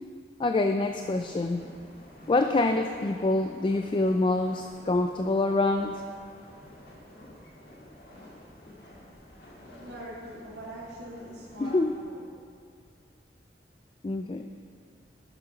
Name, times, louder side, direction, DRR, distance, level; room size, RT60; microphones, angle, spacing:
voice 1, 0.4-1.6 2.3-6.0 11.6-11.9 14.0-14.5, left 2 dB, 25° left, 6 dB, 0.3 m, -26 dB
sound 1, 0.9-12.0, left 1 dB, 60° left, 2.1 m, -50 dB
voice 2, 9.7-12.3, right 1 dB, 80° right, -9 dB, 2.1 m, -42 dB
11.0 x 6.8 x 5.9 m, 2.3 s
head